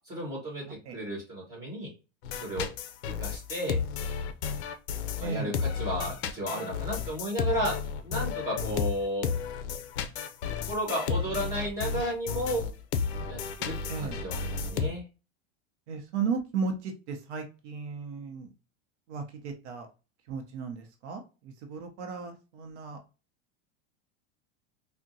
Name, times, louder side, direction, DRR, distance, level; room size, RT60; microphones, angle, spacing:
voice 1, 0.1-1.9 2.4-2.7 3.2-3.8 5.2-7.8 8.0-9.3 10.7-12.6 13.3-15.0, equal, 10° right, -4 dB, 1.4 m, -33 dB
sound 1, 2.2-14.9, left 6 dB, 65° left, 0.5 m, -32 dB
voice 2, 5.2-5.5 13.9-14.2 15.9-18.5 19.1-19.9 20.3-23.0, right 5 dB, 75° right, 4 dB, 0.7 m, -35 dB
3.6 x 2.1 x 2.6 m, 0.31 s
supercardioid pair, 175°, 35 cm